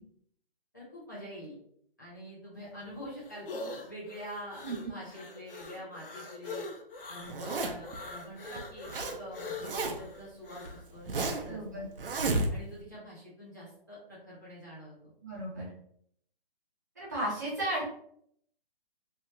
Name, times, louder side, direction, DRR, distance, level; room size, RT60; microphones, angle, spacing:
voice 1, 0.7-1.6 2.0-3.5 3.9-4.6 4.9-6.7 7.1-11.9 12.5-15.1, equal, 20° left, -9 dB, 0.6 m, -45 dB
sound 1, 2.6-10.8, left 2 dB, 65° left, 0.6 m, -43 dB
Zipper (clothing), 7.3-8.0 8.6-9.2 9.4-10.2 10.6-11.5 12.0-12.8, right 3 dB, 65° right, 0.7 m, -32 dB
voice 2, 11.5-11.9 15.2-15.7 17.0-17.9, right 1 dB, 20° right, -8 dB, 0.7 m, -34 dB
2.9 x 2.3 x 3.1 m, 0.68 s
hypercardioid pair, 175°, 30 cm